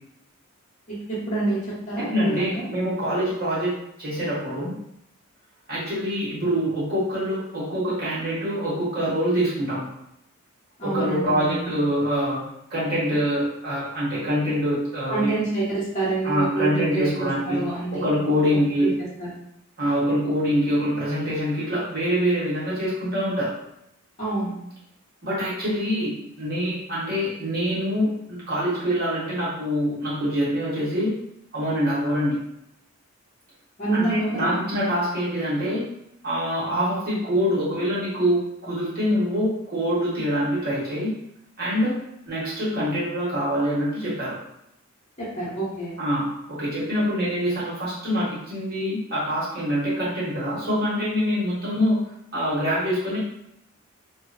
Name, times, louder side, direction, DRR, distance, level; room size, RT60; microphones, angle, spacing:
voice 1, 0.9-2.6 10.8-11.7 15.1-18.1 18.8-18.9 19.2-19.3 24.2-24.5 33.8-34.6 45.2-46.0, right 3 dB, 30° left, -9 dB, 0.9 m, -27 dB
voice 2, 2.0-3.7 4.0-4.7 5.7-9.9 10.8-15.3 16.2-18.9 19.8-23.5 25.2-31.1 31.5-32.4 33.9-35.8 36.2-41.1 41.6-42.0 42.3-44.4 46.0-52.0 52.3-53.2, equal, 45° right, -8 dB, 1.1 m, -25 dB
2.1 x 2.1 x 3.8 m, 0.80 s
head